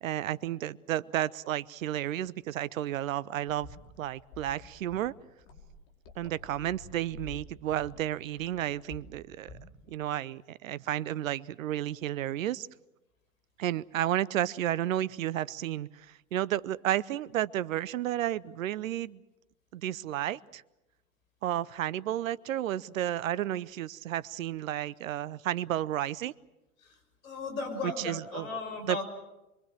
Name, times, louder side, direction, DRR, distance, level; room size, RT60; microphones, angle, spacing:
voice 1, 0.0-3.7 4.0-5.1 6.2-9.6 9.9-12.7 13.6-19.2 19.7-20.6 21.4-26.3 27.8-28.5 28.9-29.0, right 12 dB, 65° right, 19 dB, 0.8 m, -32 dB
sound 1, 3.5-10.0, left 3 dB, 50° left, 5.2 m, -50 dB
voice 2, 27.2-29.0, left 3 dB, 70° left, 7 dB, 6.2 m, -36 dB
26.5 x 22.0 x 7.5 m, 0.98 s
figure-of-eight pair, 95°, 43 cm